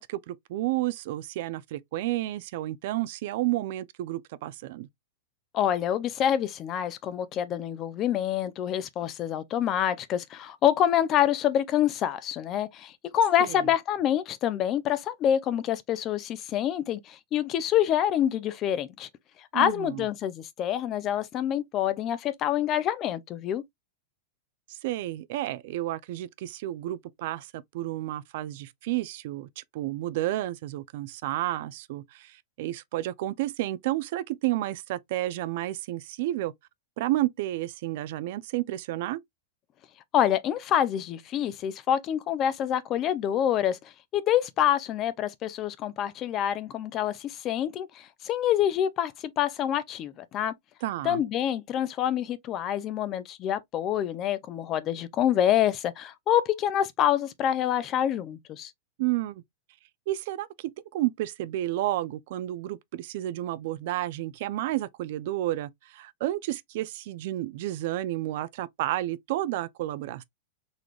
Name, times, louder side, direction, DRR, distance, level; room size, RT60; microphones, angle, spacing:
voice 1, 0.0-4.9 13.4-13.7 19.5-20.0 24.7-36.5 37.0-39.2 50.8-51.2 59.0-59.4 60.1-70.2, right 15 dB, 55° right, 0.4 m, -31 dB
voice 2, 5.5-19.1 19.5-23.6 40.1-50.5 51.0-58.7, left 10 dB, 30° left, 0.4 m, -26 dB
3.9 x 3.2 x 2.3 m
supercardioid pair, 155°, 0 cm